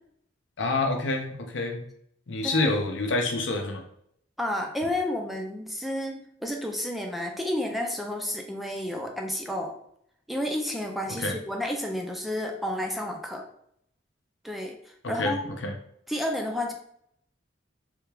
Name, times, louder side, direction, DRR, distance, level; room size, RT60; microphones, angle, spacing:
voice 1, 0.6-1.8 2.3-3.8 11.2-11.4 15.0-15.3 15.6-15.7, left 2 dB, 75° left, 3 dB, 0.6 m, -27 dB
voice 2, 4.4-9.8 10.3-13.4 14.4-15.5 16.1-16.7, left 1 dB, ahead, 1 dB, 0.4 m, -31 dB
3.4 x 2.3 x 3.3 m, 0.70 s
head